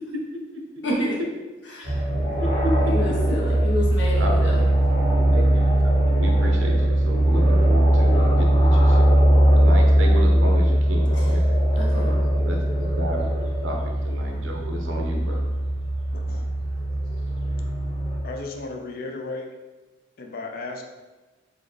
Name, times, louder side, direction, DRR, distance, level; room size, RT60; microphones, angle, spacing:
voice 1, 0.8-1.1 1.7-2.0 2.8-4.6 11.7-12.1, left 1 dB, 65° left, -4 dB, 1.0 m, -29 dB
sound 1, 1.8-18.2, right 1 dB, 25° left, 0.9 m, -20 dB
voice 2, 2.4-3.0 4.1-4.5 5.1-9.1 9.5-11.4 11.9-15.5, equal, 75° right, 1 dB, 0.7 m, -32 dB
voice 3, 16.1-16.5 18.2-19.5 20.2-20.8, left 3 dB, 50° left, 3 dB, 0.4 m, -34 dB
3.8 x 2.5 x 3.2 m, 1.2 s
head